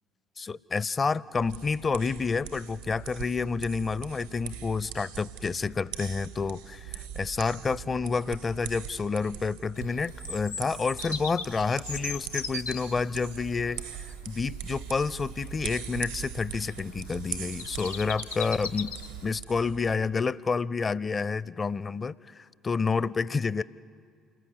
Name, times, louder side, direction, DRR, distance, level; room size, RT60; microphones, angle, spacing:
voice 1, 0.4-18.9 19.2-23.6, left 4 dB, 35° left, 21 dB, 0.5 m, -29 dB
sound 1, 1.3-19.8, right 9 dB, 85° right, 1.0 m, -41 dB
Bird vocalization bird call bird song, 9.8-19.4, left 4 dB, 85° left, 0.7 m, -40 dB
28.5 x 20.5 x 8.0 m, 2.2 s
figure-of-eight pair, 50°, 0 cm